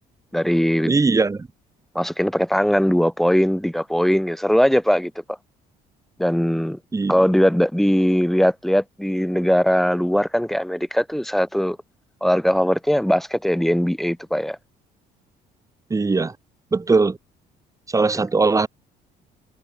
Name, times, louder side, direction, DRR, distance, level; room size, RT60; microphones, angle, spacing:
voice 1, 0.3-0.9 1.9-5.1 6.2-6.8 7.1-11.8 12.2-14.6, equal, ahead, 2.9 m, -20 dB
voice 2, 0.8-1.5 6.9-7.1 15.9-16.3 16.7-17.2 17.9-18.7, right 3 dB, 20° right, 2.0 m, -19 dB
cardioid pair, 110°, 17 cm